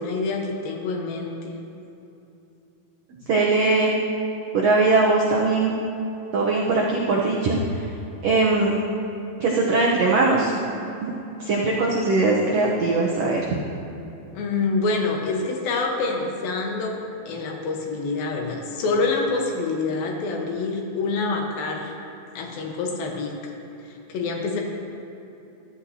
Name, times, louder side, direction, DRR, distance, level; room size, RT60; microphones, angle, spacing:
voice 1, 0.0-1.5 14.3-17.0 17.3-21.9 22.4-23.5 24.1-24.6, left 3 dB, 85° left, 1 dB, 3.0 m, -26 dB
voice 2, 3.3-3.9 4.5-5.7 6.3-7.6 8.2-8.8 9.4-10.5 11.0-11.1 11.4-13.5, right 3 dB, 80° right, -3 dB, 1.4 m, -20 dB
14.0 x 13.0 x 2.8 m, 2.8 s
omnidirectional pair, 4.1 m